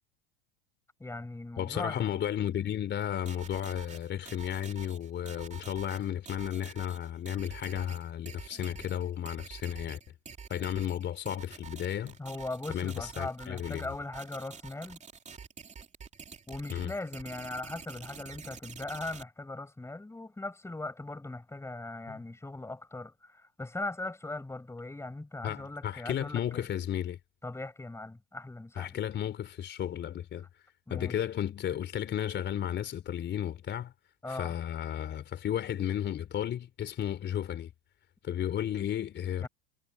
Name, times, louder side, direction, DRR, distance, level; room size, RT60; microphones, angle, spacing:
voice 1, 1.0-2.1 12.2-15.0 16.5-26.6 27.4-29.0 30.9-31.2 34.2-34.5 39.4-39.5, left 2 dB, 10° left, 5.8 m, -39 dB
voice 2, 1.6-10.0 10.5-12.2 12.7-13.9 16.7-16.9 22.1-22.2 25.4-27.2 28.8-30.5 30.9-33.9 34.3-37.7 38.2-39.5, left 10 dB, 35° left, 3.9 m, -33 dB
sound 1, 3.3-19.2, right 6 dB, 20° right, 2.8 m, -47 dB
hypercardioid pair, 90°, 31 cm